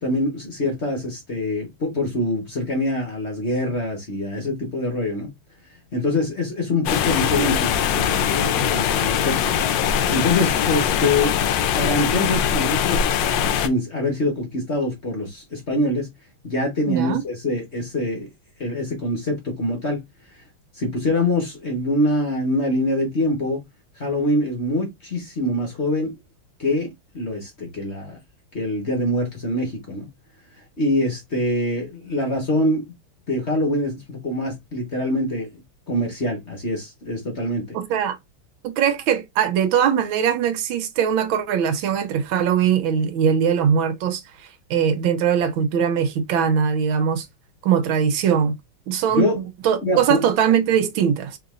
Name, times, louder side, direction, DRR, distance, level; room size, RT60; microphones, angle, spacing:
voice 1, 0.0-5.3 5.9-9.5 10.1-11.3 11.8-16.1 16.4-18.3 18.6-20.0 20.8-23.6 24.0-26.2 26.6-28.2 28.5-30.1 30.8-32.8 33.3-35.6 35.9-37.8 49.1-49.4 49.8-50.2, left 1 dB, 40° left, 1.2 m, -24 dB
sound 1, 6.9-13.7, left 8 dB, 75° left, 1.1 m, -21 dB
voice 2, 16.9-17.2 37.7-38.2 38.6-44.2 44.7-47.3 47.6-48.5 48.9-49.3 49.6-51.4, right 8 dB, 75° right, 1.4 m, -21 dB
3.8 x 3.7 x 2.4 m
omnidirectional pair, 2.3 m